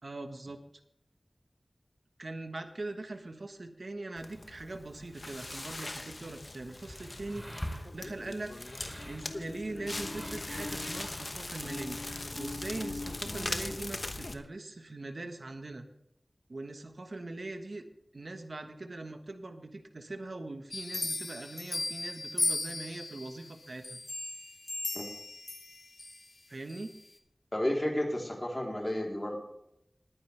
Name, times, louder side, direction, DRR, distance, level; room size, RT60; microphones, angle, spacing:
voice 1, 0.0-0.6 2.2-8.6 9.0-12.0 12.4-15.9 16.5-17.8 18.1-24.0 26.5-26.9, right 2 dB, 70° right, 7 dB, 1.4 m, -41 dB
Crackle, 4.2-14.3, left 2 dB, 55° left, 1.1 m, -40 dB
sound 1, 6.3-12.5, equal, 10° left, 3.1 m, -45 dB
sound 2, 20.7-23.3 23.8-26.2 26.7-26.8, left 2 dB, 75° left, 1.7 m, -36 dB
voice 2, 27.5-29.4, left 1 dB, 25° left, -1 dB, 3.7 m, -32 dB
20.5 x 9.5 x 3.5 m, 0.78 s
wide cardioid pair, 65°, 0 cm